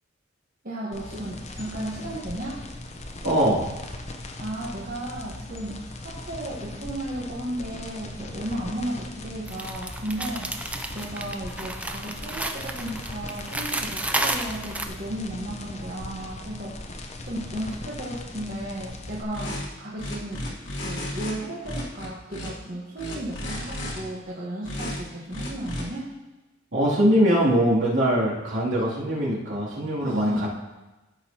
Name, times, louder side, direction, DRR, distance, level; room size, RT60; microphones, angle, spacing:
voice 1, 0.6-2.6 4.4-10.5 10.9-20.4 20.8-26.1 30.0-30.5, right 1 dB, 45° right, -6 dB, 1.3 m, -34 dB
sound 1, 0.9-19.2, left 2 dB, 35° left, 0.8 m, -39 dB
voice 2, 3.2-3.6 26.7-30.5, equal, 65° right, -7 dB, 2.8 m, -22 dB
sound 2, 9.5-14.9, right 2 dB, 5° right, 0.4 m, -31 dB
sound 3, 19.3-19.7 20.0-21.3 21.6-22.5 23.0-24.0 24.6-25.0 25.3-25.8, left 1 dB, 70° left, 1.7 m, -33 dB
14.5 x 6.4 x 2.9 m, 1.1 s
head